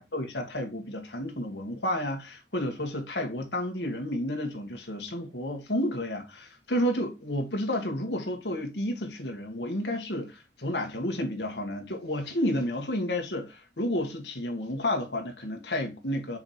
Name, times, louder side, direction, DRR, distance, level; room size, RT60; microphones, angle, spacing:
voice 1, 0.0-16.4, left 1 dB, 80° left, 1.9 m, -31 dB
5.8 x 5.0 x 4.3 m
head